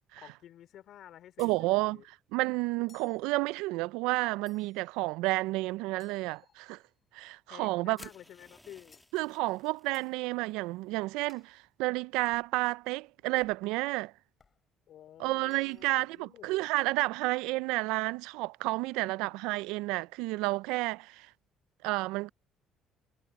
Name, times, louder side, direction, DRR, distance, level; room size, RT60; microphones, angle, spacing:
voice 1, 0.2-2.0 6.2-6.5 7.5-9.0 14.9-16.5 18.8-19.6, left 11 dB, 65° left, 3.0 m, -52 dB
sound 1, 1.4-1.6 2.9-3.2 4.5-4.9 6.0-6.9 8.0-8.2 8.9-9.1 9.9-10.1 11.3-11.5 12.3-12.5 13.4-13.7 14.4-14.6 15.4-16.0, left 5 dB, 35° left, 5.4 m, -63 dB
voice 2, 1.4-2.0 2.3-6.8 7.1-8.0 9.1-14.1 15.2-21.3 21.8-22.3, right 21 dB, 85° right, 0.4 m, -31 dB
sound 2, 8.0-10.1, left 1 dB, 5° left, 1.5 m, -55 dB
supercardioid pair, 70°, 0 cm